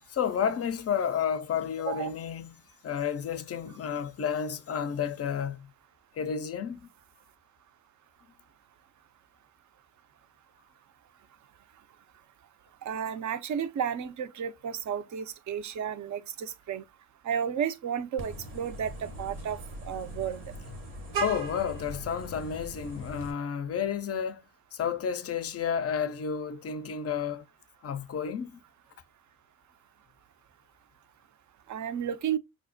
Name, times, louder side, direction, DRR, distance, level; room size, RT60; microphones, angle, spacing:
voice 1, 0.1-2.5 2.8-5.7 6.2-6.9 21.2-24.4 24.7-27.4 27.8-28.6, left 7 dB, 35° left, 0.5 m, -31 dB
voice 2, 12.8-16.8 17.2-20.4 31.7-32.4, right 8 dB, 45° right, 0.6 m, -32 dB
Vehicle horn car horn honking, 18.2-23.3, right 3 dB, 80° right, 1.2 m, -39 dB
5.0 x 2.0 x 2.5 m
hypercardioid pair, 50°, 41 cm